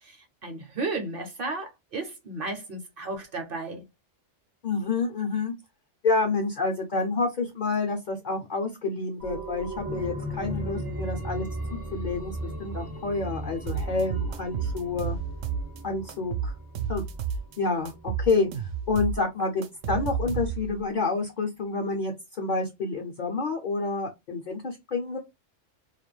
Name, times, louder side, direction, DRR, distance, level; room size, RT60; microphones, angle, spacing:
voice 1, 0.0-3.8, right 3 dB, 55° right, 0.7 m, -34 dB
voice 2, 4.6-5.5 6.0-15.2 15.8-16.5 16.9-17.0 17.6-17.9 18.2-18.5 18.9-25.2, left 3 dB, 55° left, 0.5 m, -28 dB
Find Newgt, 9.2-18.5 18.9-19.0, right 1 dB, 20° right, 0.4 m, -37 dB
sound 1, 13.7-15.8 16.1-17.6 17.9-20.8, right 7 dB, 85° right, 0.9 m, -31 dB
2.3 x 2.2 x 3.0 m
omnidirectional pair, 1.2 m